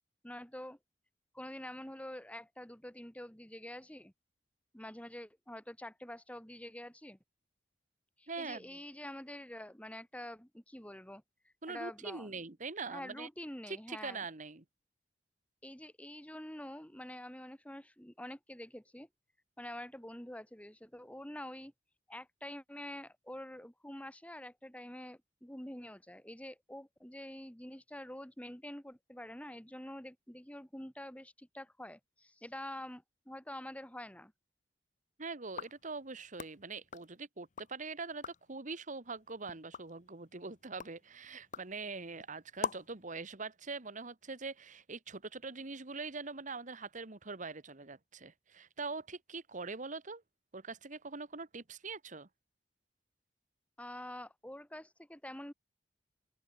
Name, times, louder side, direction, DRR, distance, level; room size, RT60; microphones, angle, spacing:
voice 1, 0.2-0.8 1.3-4.1 4.7-7.2 8.2-11.2 11.7-12.3 12.9-14.2 15.6-19.1 19.6-21.7 22.1-34.3 53.8-55.5, left 1 dB, 10° left, 2.7 m, -47 dB
voice 2, 8.3-8.6 11.6-13.3 13.7-14.6 35.2-50.2 50.5-52.3, right 4 dB, 45° right, 1.7 m, -43 dB
sound 1, 35.4-37.8 38.1-38.6 39.0-43.0, left 6 dB, 45° left, 0.6 m, -46 dB
open air
head